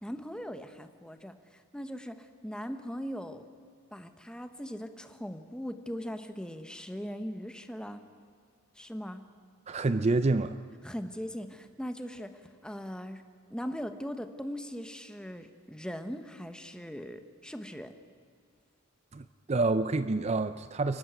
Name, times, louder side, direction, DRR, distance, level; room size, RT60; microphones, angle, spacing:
voice 1, 0.0-3.4 3.9-8.0 8.7-9.2 10.8-13.2 13.5-17.9, equal, 5° left, 8 dB, 1.0 m, -40 dB
voice 2, 9.7-10.6 19.1-21.0, right 3 dB, 30° right, 12 dB, 0.5 m, -28 dB
28.5 x 12.0 x 9.4 m, 2.2 s
head